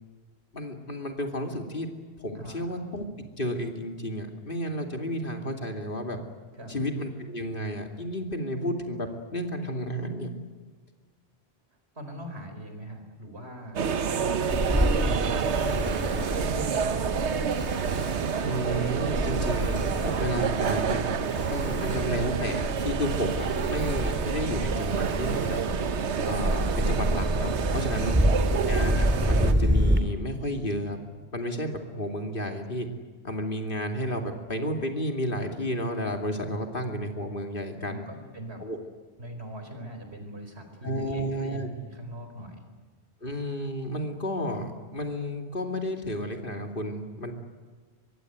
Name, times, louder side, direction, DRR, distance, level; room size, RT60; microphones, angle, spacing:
voice 1, 0.5-1.9 2.2-3.1 3.4-6.2 6.7-10.3 18.4-21.0 21.5-25.6 26.2-28.2 28.6-31.0 31.3-32.9 33.2-38.0 38.6-38.8 40.8-41.7 43.2-47.3, equal, 50° left, 4 dB, 2.8 m, -32 dB
voice 2, 2.3-2.7 6.5-6.8 11.9-14.6 15.0-17.5 27.9-28.5 37.8-38.6 39.2-42.7, equal, 70° right, 6 dB, 4.8 m, -41 dB
sound 1, 13.8-29.5, right 6 dB, 90° right, 1.3 m, -29 dB
Ocean, 14.5-30.0, equal, 10° right, 2.4 m, -28 dB
25.0 x 22.5 x 9.4 m, 1.4 s
omnidirectional pair, 1.1 m